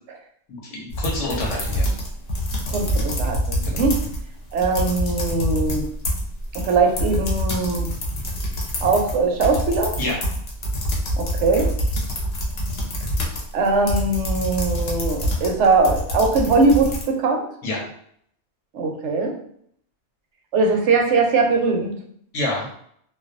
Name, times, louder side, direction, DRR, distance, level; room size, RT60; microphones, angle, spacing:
voice 1, 0.5-1.9 3.6-3.8 10.0-10.2 17.6-17.8 22.3-22.7, left 1 dB, 85° left, -2 dB, 1.0 m, -27 dB
sound 1, 0.9-4.2 4.5-17.0, equal, 65° left, 0.8 m, -26 dB
voice 2, 2.7-4.0 4.5-5.8 6.5-7.9 8.8-9.9 11.2-11.7 13.5-17.4 18.7-19.3 20.5-21.9, right 3 dB, 80° right, 2 dB, 0.9 m, -20 dB
2.3 x 2.2 x 2.5 m, 0.66 s
omnidirectional pair, 1.2 m